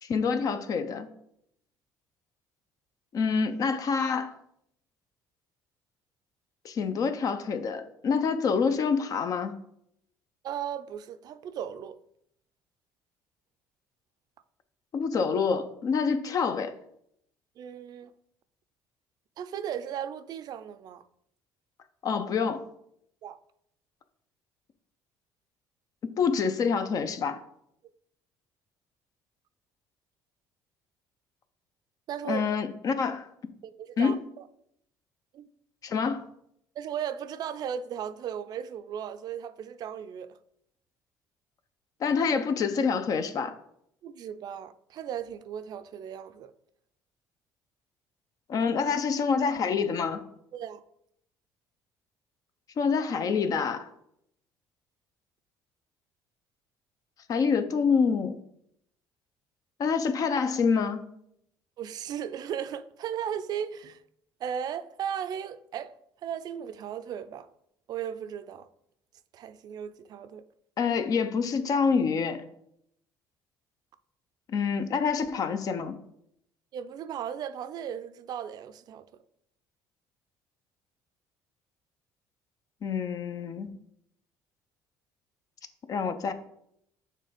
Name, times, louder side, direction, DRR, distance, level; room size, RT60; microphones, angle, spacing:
voice 1, 0.0-1.1 3.1-4.3 6.6-9.5 14.9-16.7 22.0-22.6 26.2-27.4 32.3-33.3 34.0-34.2 35.8-36.2 42.0-43.6 48.5-50.2 52.8-53.9 57.3-58.4 59.8-61.1 70.8-72.5 74.5-76.0 82.8-83.8 85.9-86.3, left 5 dB, 50° left, 0.7 m, -27 dB
voice 2, 10.4-12.0 17.6-18.1 19.4-21.0 23.2-23.4 32.1-32.4 33.6-34.5 35.3-35.5 36.8-40.4 44.0-46.5 50.5-50.8 61.8-64.0 64.4-66.0 66.2-67.5 67.9-68.7 69.3-70.5 76.7-79.2, right 9 dB, 60° right, 0.5 m, -36 dB
6.6 x 3.2 x 5.0 m
supercardioid pair, 90°, 8 cm